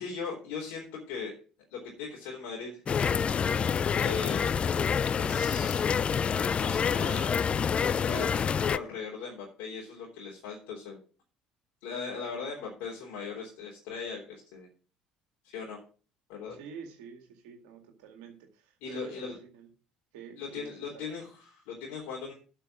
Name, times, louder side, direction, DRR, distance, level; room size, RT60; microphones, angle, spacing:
voice 1, 0.0-1.3 1.7-2.8 3.9-4.5 5.1-5.8 6.6-7.3 7.8-11.0 11.8-14.7 15.4-15.8 16.3-16.6 18.8-19.4 20.4-22.3, left 5 dB, 70° left, -3 dB, 3.5 m, -39 dB
sound 1, 2.9-8.8, left 7 dB, 35° left, 0.4 m, -27 dB
voice 2, 16.5-19.7 20.1-21.1, right 7 dB, 75° right, 3 dB, 2.1 m, -48 dB
8.4 x 6.1 x 7.6 m, 0.37 s
hypercardioid pair, 60°, 3 cm